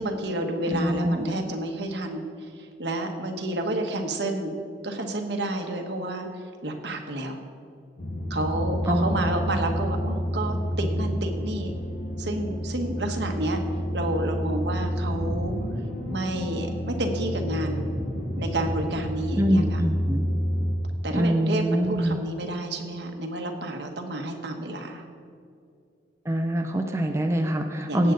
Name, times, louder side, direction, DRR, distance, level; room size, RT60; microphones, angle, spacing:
voice 1, 0.0-4.5 4.8-7.4 8.3-11.7 12.2-13.6 13.9-15.5 16.1-17.9 18.4-19.8 21.0-25.0 27.9-28.1, right 1 dB, 70° right, 4 dB, 1.3 m, -30 dB
voice 2, 0.7-1.3 8.9-9.3 19.3-20.3 21.1-22.2 26.3-28.1, equal, 15° right, 3 dB, 0.6 m, -24 dB
sound 1, 8.0-20.7, equal, 50° left, 1.6 m, -29 dB
17.5 x 8.0 x 3.9 m, 2.4 s
head